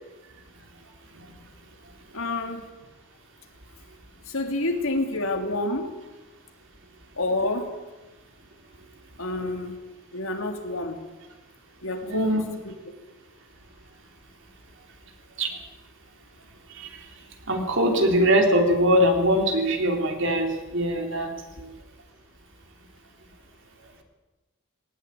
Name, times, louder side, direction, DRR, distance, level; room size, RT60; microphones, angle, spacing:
voice 1, 2.1-2.7 4.2-6.0 7.2-7.7 9.2-9.8 10.1-11.0 11.8-12.7, left 2 dB, 70° left, 4 dB, 3.1 m, -28 dB
voice 2, 12.0-12.4 15.4-15.6 16.7-17.1 17.5-21.7, equal, 55° right, 3 dB, 3.5 m, -22 dB
19.0 x 18.5 x 9.4 m, 1.1 s
head